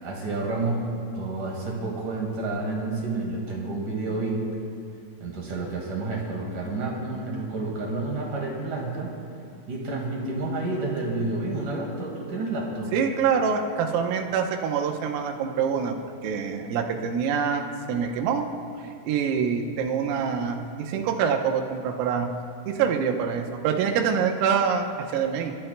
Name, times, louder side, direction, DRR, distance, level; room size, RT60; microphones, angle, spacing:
voice 1, 0.0-4.5 5.2-9.1 9.7-12.9, right 2 dB, 55° right, -2 dB, 2.5 m, -30 dB
voice 2, 12.9-16.0 16.2-18.5 18.8-22.3 22.7-25.6, right 6 dB, 80° right, 3 dB, 3.5 m, -25 dB
29.5 x 13.5 x 2.2 m, 2.5 s
omnidirectional pair, 6.0 m